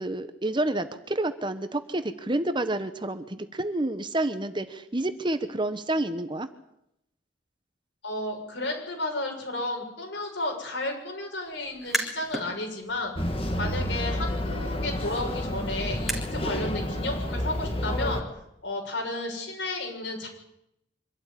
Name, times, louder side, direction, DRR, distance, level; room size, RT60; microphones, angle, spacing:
voice 1, 0.0-6.5 13.6-13.7, right 1 dB, 25° right, 10 dB, 1.2 m, -29 dB
voice 2, 8.0-13.2 13.6-18.3 18.6-20.3, left 2 dB, 65° left, 2 dB, 6.9 m, -32 dB
sound 1, 11.7-12.5 12.9-16.6, right 1 dB, ahead, 3.6 m, -36 dB
sound 2, 13.2-18.2, left 1 dB, 30° left, 2.3 m, -30 dB
25.0 x 13.0 x 10.0 m, 0.81 s
head